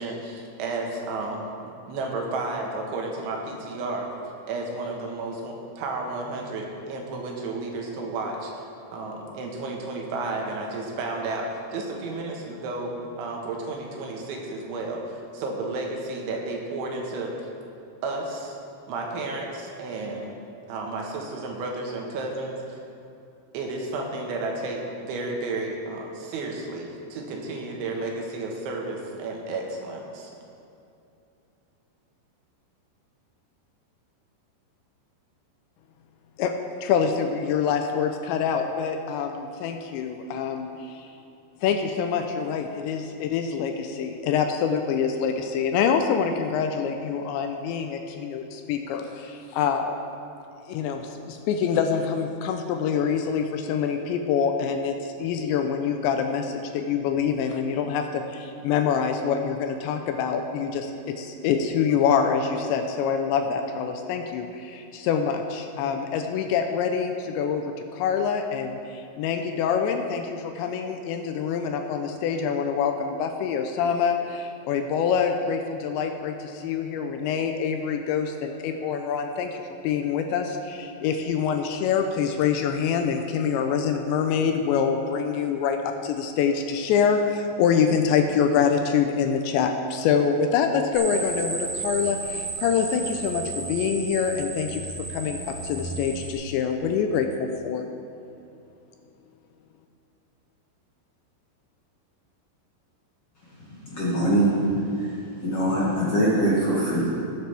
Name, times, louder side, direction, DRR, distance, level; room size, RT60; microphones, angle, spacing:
voice 1, 0.0-4.1 4.5-8.6 8.9-17.3 18.0-18.5 18.9-20.3 20.7-22.8 23.5-30.3, right 2 dB, 80° right, 0 dB, 3.7 m, -32 dB
voice 2, 36.8-41.1 41.6-50.0 50.7-51.0 51.3-94.8 95.1-97.8, left 6 dB, 85° left, 5 dB, 2.8 m, -25 dB
sound 1, 90.9-96.3, right 3 dB, 50° right, 2.1 m, -33 dB
voice 3, 103.6-107.1, right 1 dB, 45° left, -8 dB, 2.0 m, -23 dB
18.5 x 9.2 x 3.4 m, 2.7 s
omnidirectional pair, 5.4 m